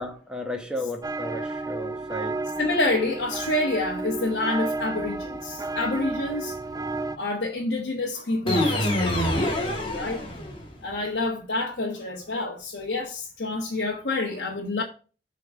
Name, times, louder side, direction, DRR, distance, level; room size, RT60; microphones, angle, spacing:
voice 1, 0.0-2.4, left 1 dB, 5° right, 1.2 m, -34 dB
sound 1, 1.0-7.2, right 3 dB, 20° right, 0.4 m, -32 dB
voice 2, 2.6-6.6 7.2-9.3 9.9-10.2 10.8-14.8, left 2 dB, 65° left, 1.3 m, -28 dB
sound 2, 8.5-10.8, left 1 dB, 30° left, 1.9 m, -25 dB
7.3 x 3.9 x 6.2 m
head